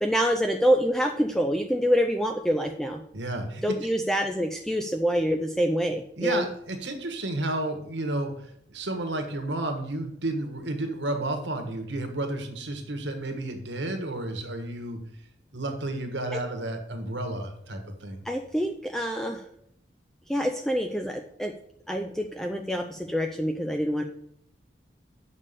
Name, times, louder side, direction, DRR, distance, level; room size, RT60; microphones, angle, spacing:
voice 1, 0.0-3.0 3.6-6.4 18.3-19.4 20.3-21.5 21.9-24.0, equal, ahead, 4 dB, 0.4 m, -26 dB
voice 2, 3.1-3.8 6.2-8.3 8.7-15.0 15.5-18.2, right 2 dB, 75° right, 5 dB, 1.4 m, -31 dB
6.7 x 5.5 x 6.7 m, 0.71 s
head